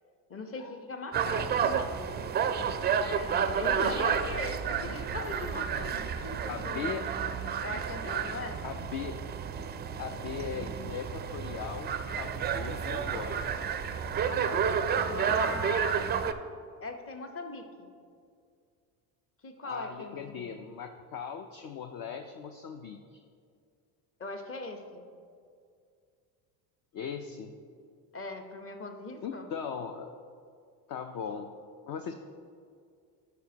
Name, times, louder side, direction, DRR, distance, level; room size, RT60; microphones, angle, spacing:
voice 1, 0.3-1.9 3.0-6.9 7.6-8.6 14.3-16.0 16.8-17.9 19.4-20.5 24.2-25.0 28.1-29.5, left 3 dB, 30° left, 5 dB, 1.0 m, -40 dB
sound 1, 1.1-16.3, right 7 dB, 25° right, 0.3 m, -31 dB
voice 2, 3.4-3.9 4.3-4.4 6.5-7.0 7.7-7.8 8.6-9.2 10.0-11.9 12.2-13.4 19.6-23.2 26.9-27.6 29.2-30.2 30.9-31.5 31.9-32.1, left 7 dB, 45° left, 6 dB, 0.5 m, -39 dB
11.5 x 5.2 x 2.8 m, 2.3 s
supercardioid pair, 75°, 47 cm